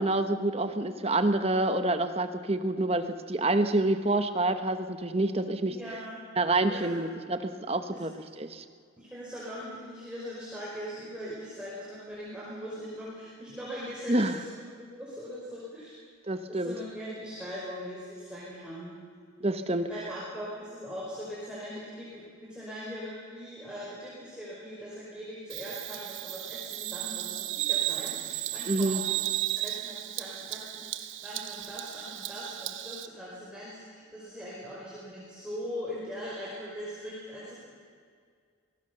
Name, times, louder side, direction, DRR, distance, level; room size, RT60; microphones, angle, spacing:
voice 1, 0.0-5.7 6.4-8.6 14.1-14.4 16.3-16.7 19.4-19.9 28.7-29.0, right 2 dB, 30° right, 9 dB, 1.1 m, -27 dB
voice 2, 5.7-6.2 6.7-7.0 7.9-8.1 9.0-14.7 14.9-16.0 16.5-19.0 19.9-29.2 29.5-37.5, equal, 5° right, -7 dB, 5.1 m, -41 dB
Bird vocalization bird call bird song, 25.5-33.1, right 14 dB, 70° right, 1.1 m, -34 dB
25.5 x 19.0 x 6.9 m, 2.1 s
head